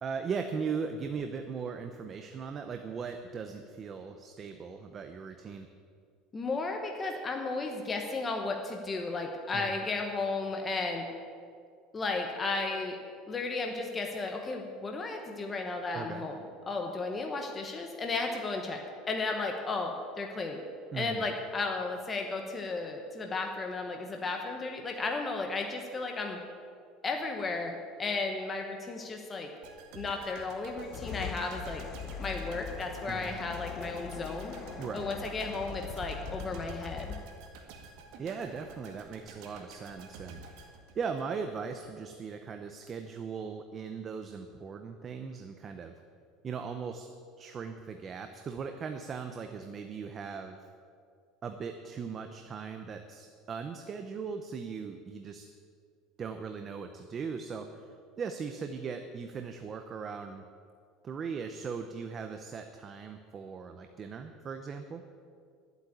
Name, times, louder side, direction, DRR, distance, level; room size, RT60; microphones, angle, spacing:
voice 1, 0.0-5.7 9.5-9.7 15.9-16.2 20.9-21.3 33.1-33.3 34.8-35.1 38.2-46.0 46.4-47.1 47.4-50.6 51.4-55.5 56.2-60.4 61.0-65.0, right 5 dB, 25° right, 6 dB, 0.6 m, -39 dB
voice 2, 6.3-11.1 11.9-13.0 13.3-16.4 16.7-18.8 19.1-20.6 20.9-26.4 27.0-29.5 29.9-31.8 32.2-34.5 34.9-37.1, left 3 dB, 15° left, 2 dB, 1.0 m, -34 dB
sound 1, 29.6-41.6 42.0-42.1, right 4 dB, 65° right, 2.0 m, -50 dB
sound 2, 30.7-37.5, left 7 dB, 35° left, 0.6 m, -42 dB
11.5 x 8.0 x 9.6 m, 2.2 s
cardioid pair, 170°, 0 cm